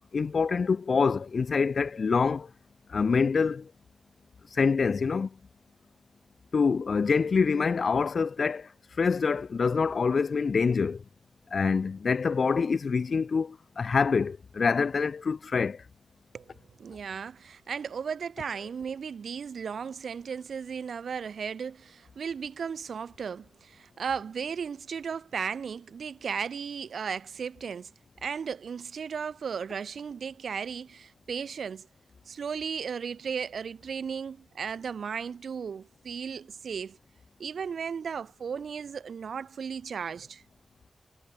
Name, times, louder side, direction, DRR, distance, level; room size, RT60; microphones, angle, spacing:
voice 1, 0.1-2.5 2.9-3.7 4.6-5.3 6.5-8.7 9.0-11.0 11.5-15.8, left 5 dB, 55° left, 0.6 m, -25 dB
voice 2, 16.8-27.9 28.2-31.9 32.3-37.0 37.4-40.4, right 6 dB, 85° right, 1.3 m, -35 dB
wide cardioid pair, 135°, 0 cm